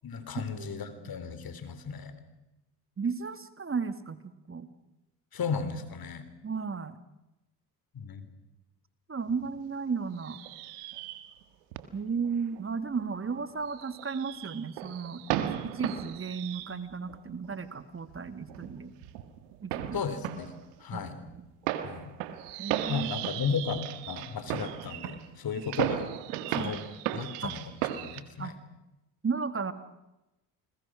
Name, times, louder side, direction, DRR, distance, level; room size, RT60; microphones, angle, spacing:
voice 1, 0.0-2.1 5.3-6.3 7.9-8.3 19.9-20.5 20.8-21.2 21.8-22.1 22.9-23.8 24.1-26.1 26.5-26.8 27.1-27.6 28.0-28.5, left 6 dB, 50° left, 11 dB, 3.7 m, -34 dB
voice 2, 3.0-4.7 6.4-7.0 9.1-10.4 11.9-18.9 19.6-20.0 20.9-21.5 22.6-23.3 25.6-25.7 26.5-26.8 27.4-27.5 28.4-28.5 29.2-29.7, right 5 dB, 30° right, 12 dB, 1.8 m, -34 dB
sound 1, 9.3-9.7 10.2-11.4 11.7-11.8 12.2-17.2 17.4-17.6 18.1-28.2, right 12 dB, 85° right, 1.7 m, -36 dB
29.0 x 21.5 x 6.3 m, 0.95 s
supercardioid pair, 65°, 45 cm